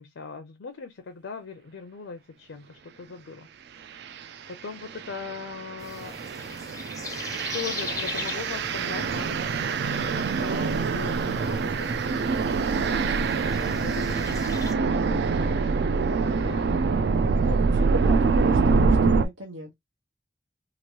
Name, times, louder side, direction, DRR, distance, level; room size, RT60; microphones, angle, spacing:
voice 1, 0.0-3.5 4.5-6.4 7.5-11.9 12.7-17.0, left 5 dB, 80° left, 0.5 m, -40 dB
sound 1, 4.0-4.2 4.8-19.3, right 4 dB, 60° right, 0.3 m, -25 dB
sound 2, 5.3-13.2, equal, 25° right, 0.9 m, -50 dB
sound 3, 5.8-14.7, left 4 dB, 20° left, 0.4 m, -40 dB
voice 2, 14.8-15.3 17.4-19.8, right 1 dB, 85° right, 0.9 m, -35 dB
2.9 x 2.5 x 2.9 m
head